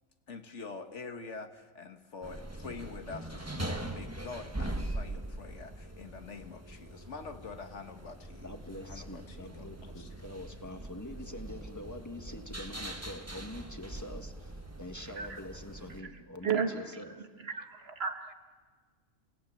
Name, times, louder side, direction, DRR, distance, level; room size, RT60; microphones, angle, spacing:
voice 1, 0.3-8.6 8.8-10.1, left 4 dB, 65° left, 7 dB, 1.7 m, -45 dB
sound 1, 2.2-16.0, right 1 dB, 10° right, 1.3 m, -42 dB
voice 2, 8.4-14.5 14.8-17.3, left 1 dB, 15° left, 5 dB, 1.6 m, -45 dB
voice 3, 16.4-16.8 17.4-18.3, right 6 dB, 55° right, 6 dB, 1.6 m, -33 dB
29.0 x 18.0 x 8.8 m, 1.5 s
omnidirectional pair, 1.3 m